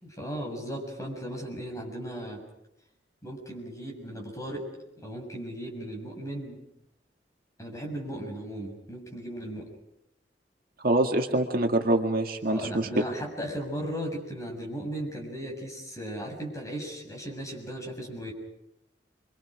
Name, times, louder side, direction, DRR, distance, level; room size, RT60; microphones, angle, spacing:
voice 1, 0.0-2.4 3.2-4.7 5.0-6.6 7.6-9.7 12.4-18.3, right 1 dB, 20° left, 0 dB, 6.7 m, -36 dB
voice 2, 10.8-12.9, right 1 dB, 55° right, 3 dB, 1.9 m, -25 dB
29.5 x 24.5 x 5.0 m, 0.83 s
head